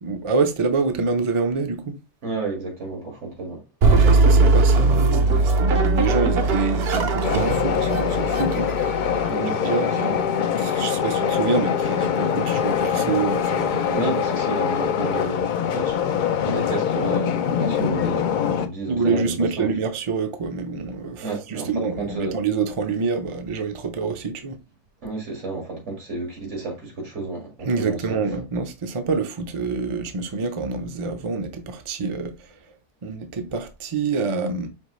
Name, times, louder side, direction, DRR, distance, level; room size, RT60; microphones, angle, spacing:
voice 1, 0.0-2.0 4.0-8.9 9.6-10.2 10.6-14.0 18.9-24.6 27.7-32.3 33.0-34.7, right 4 dB, 35° right, 0.6 m, -26 dB
voice 2, 2.2-3.6 4.0-4.5 9.3-10.2 11.2-11.3 13.9-16.0 16.4-19.7 21.2-22.4 25.0-28.2, right 3 dB, 85° right, 2.2 m, -31 dB
sound 1, 3.8-9.3, right 3 dB, 60° right, 0.9 m, -19 dB
sound 2, 7.2-18.7, left 8 dB, 60° left, 0.5 m, -23 dB
5.3 x 2.9 x 3.0 m
omnidirectional pair, 1.2 m